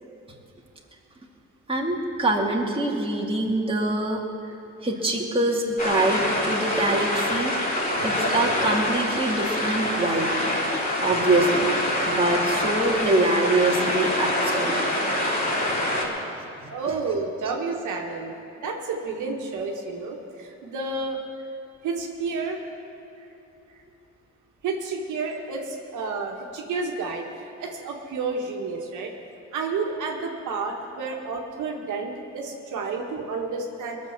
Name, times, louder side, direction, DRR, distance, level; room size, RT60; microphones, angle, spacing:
voice 1, 1.7-4.2 4.8-7.5 8.0-10.3 11.0-14.7 16.6-16.7, right 2 dB, 20° right, -1 dB, 2.2 m, -24 dB
sound 1, 5.8-16.0, left 1 dB, 30° left, 3.4 m, -25 dB
voice 2, 16.7-18.4 18.6-21.2 21.8-22.6 23.2-23.3 24.6-27.2 27.6-29.1 29.5-34.0, right 4 dB, 80° right, 0 dB, 1.8 m, -30 dB
20.5 x 6.8 x 7.3 m, 2.8 s
cardioid pair, 90°, 30 cm